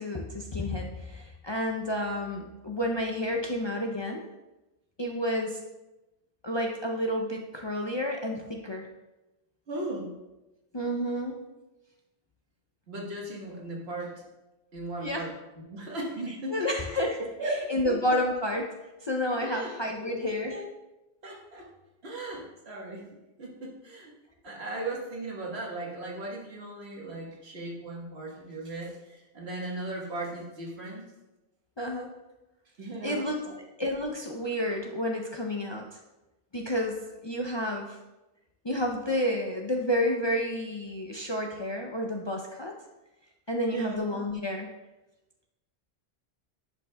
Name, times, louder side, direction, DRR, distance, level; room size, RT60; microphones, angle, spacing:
voice 1, 0.0-4.2 5.0-5.6 6.4-8.9 10.7-11.4 15.0-15.3 16.5-17.4 17.7-18.7 19.0-20.5 31.8-32.1 33.0-33.4 33.8-36.0 36.5-38.0 38.6-42.7 43.5-44.7, left 1 dB, 40° left, 1 dB, 0.4 m, -30 dB
voice 2, 9.7-10.1 12.9-14.2 14.7-15.3 15.7-16.7 17.4-17.6 17.8-18.0 19.4-19.7 20.0-20.7 21.2-21.7 22.0-23.1 23.4-24.1 24.4-31.0 32.8-33.6 43.7-44.0, right 1 dB, 80° right, -3 dB, 1.6 m, -37 dB
10.5 x 5.5 x 2.2 m, 1.0 s
omnidirectional pair, 1.1 m